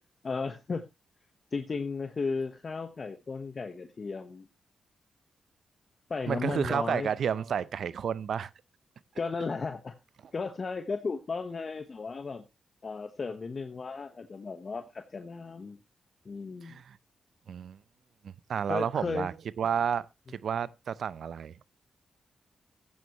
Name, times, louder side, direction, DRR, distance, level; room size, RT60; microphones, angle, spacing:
voice 1, 0.2-0.8 1.5-4.5 6.1-7.1 9.1-9.9 10.3-12.4 12.8-15.8 16.2-16.8 18.7-19.3, left 4 dB, 50° left, 1.1 m, -35 dB
voice 2, 6.3-8.5 16.6-17.0 17.5-17.8 18.2-21.6, right 8 dB, 75° right, 0.6 m, -31 dB
14.0 x 9.3 x 3.0 m
cardioid pair, 55°, 0 cm